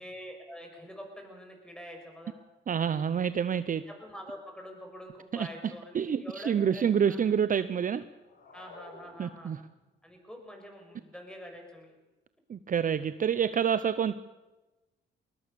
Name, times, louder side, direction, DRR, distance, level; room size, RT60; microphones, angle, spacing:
voice 1, 0.0-2.4 3.9-7.2 8.5-9.5 10.0-11.9, equal, 5° left, 3 dB, 6.3 m, -46 dB
voice 2, 2.7-3.8 5.3-5.5 5.9-8.0 9.2-9.6 12.5-14.2, right 8 dB, 45° right, 14 dB, 0.7 m, -27 dB
sound 1, 8.2-9.8, left 3 dB, 70° left, 7.1 m, -51 dB
21.0 x 20.5 x 6.9 m, 1.1 s
cardioid pair, 90°, 20 cm